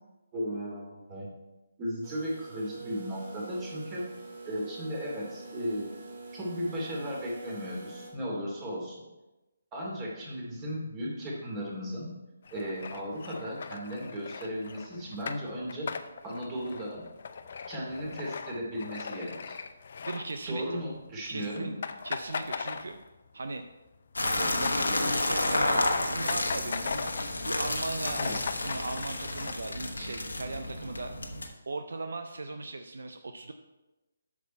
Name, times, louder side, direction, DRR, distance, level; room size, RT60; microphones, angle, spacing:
voice 1, 0.3-1.3 1.8-4.0 4.4-5.9 6.3-9.0 9.7-12.1 12.5-15.9 16.2-17.0 17.7-19.6 20.5-21.7 28.2-28.3, equal, 25° right, -3 dB, 2.7 m, -35 dB
sound 1, 2.0-8.1, right 3 dB, 55° right, 2.3 m, -45 dB
sound 2, 12.5-20.9 21.1-21.3 21.6-23.3 23.7-27.4 27.8-27.9 28.0-29.5, left 5 dB, 55° left, 0.6 m, -39 dB
voice 2, 20.0-20.8 21.3-21.8 22.0-23.0 23.3-23.6 24.4-27.1 27.4-28.2 28.6-31.1 31.7-33.5, right 3 dB, 75° right, 7 dB, 0.6 m, -38 dB
sound 3, 24.1-31.5, left 2 dB, 90° left, 1.2 m, -30 dB
8.3 x 6.2 x 4.4 m, 1.0 s
figure-of-eight pair, 150°, 0 cm